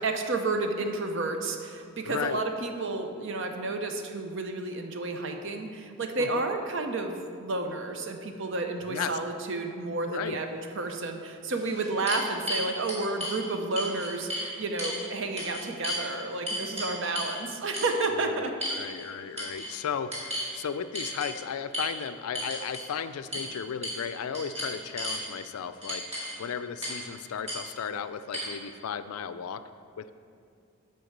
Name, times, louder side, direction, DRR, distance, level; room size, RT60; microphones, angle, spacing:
voice 1, 0.0-10.5 10.8-18.5 26.4-26.5, right 3 dB, 60° right, 5 dB, 0.7 m, -31 dB
voice 2, 2.0-2.4 6.2-6.4 8.8-9.1 10.0-10.4 18.3-29.6 30.0-30.1, left 7 dB, 90° left, 12 dB, 0.4 m, -35 dB
sound 1, 10.8-10.9 11.5-13.4 13.8-14.5 14.8-15.0 15.4-16.0 16.5-17.4 17.7-17.9 18.6-19.1 19.4-19.7 20.1-20.5 20.9-21.3 21.7-21.9 22.3-22.9 23.3-23.5 23.8-24.1 24.3-25.2 25.8-26.3 26.8-27.0 27.5-27.6 28.3-28.4, equal, 30° right, 2.1 m, -33 dB
7.7 x 4.6 x 6.6 m, 2.3 s
head